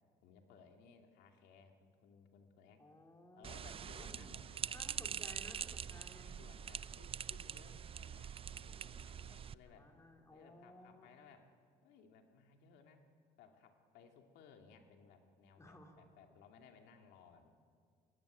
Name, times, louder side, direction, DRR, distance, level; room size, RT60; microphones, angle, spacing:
voice 1, 0.2-2.8 3.4-5.4 5.9-9.9 10.3-11.5 11.8-13.0 13.4-17.5, left 6 dB, 85° left, 4 dB, 2.5 m, -62 dB
voice 2, 2.8-3.6 3.9-4.3 4.7-6.3 9.7-11.1 15.6-16.0, left 1 dB, 15° left, 2 dB, 3.4 m, -58 dB
sound 1, 3.4-9.5, right 8 dB, 35° right, 0.5 m, -44 dB
23.5 x 16.5 x 9.7 m, 2.2 s
cardioid pair, 110°, 17 cm